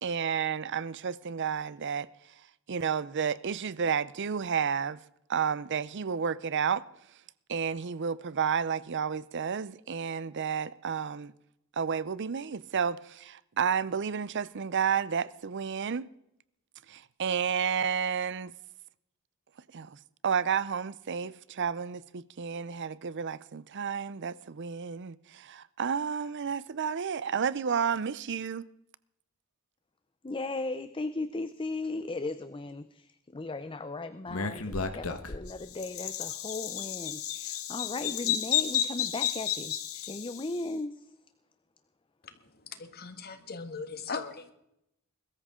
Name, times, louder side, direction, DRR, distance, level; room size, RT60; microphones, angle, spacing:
voice 1, 0.0-2.1 2.7-5.0 5.3-6.8 7.5-11.3 11.8-16.1 16.9-18.5 19.7-20.0 20.2-28.7, right 7 dB, 55° right, 0.6 m, -31 dB
voice 2, 30.2-41.2, left 2 dB, 25° left, 0.6 m, -37 dB
Bird vocalization bird call bird song, 34.3-40.6, left 9 dB, 80° left, 1.4 m, -32 dB
voice 3, 42.8-44.5, left 4 dB, 50° left, 1.6 m, -38 dB
21.5 x 13.5 x 3.7 m
head